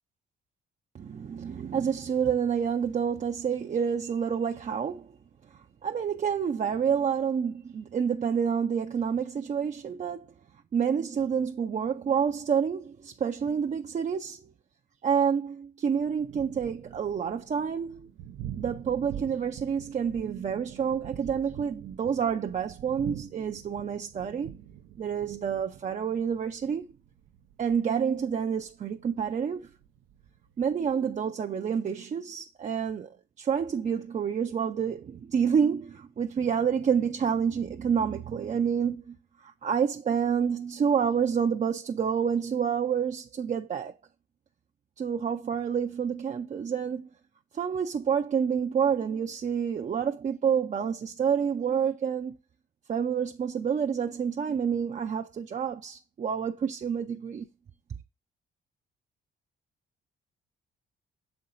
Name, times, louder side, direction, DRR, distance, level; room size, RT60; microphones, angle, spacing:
voice 1, 0.9-5.1 5.8-10.3 10.7-14.4 15.0-18.1 18.6-24.5 25.0-26.8 27.6-29.7 30.6-33.1 33.4-43.9 45.0-47.1 47.5-52.4 52.9-57.5, right 7 dB, 40° right, 0.5 m, -28 dB
Thunder, 15.9-31.2, right 10 dB, 85° right, 0.6 m, -45 dB
6.6 x 4.4 x 3.9 m
cardioid pair, 90°, 20 cm